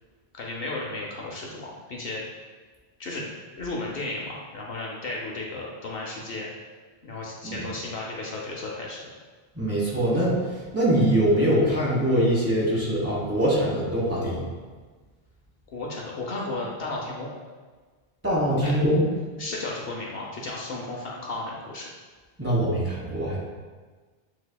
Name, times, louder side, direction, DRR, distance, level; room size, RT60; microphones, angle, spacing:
voice 1, 0.3-2.2 3.0-3.3 3.6-6.5 7.0-9.1 15.7-17.3 18.6-18.8 19.4-21.9, left 2 dB, 65° left, -2 dB, 0.8 m, -34 dB
voice 2, 9.5-14.4 18.2-19.1 22.4-23.4, right 1 dB, 15° right, -7 dB, 1.2 m, -23 dB
8.0 x 2.7 x 2.2 m, 1.4 s
omnidirectional pair, 1.1 m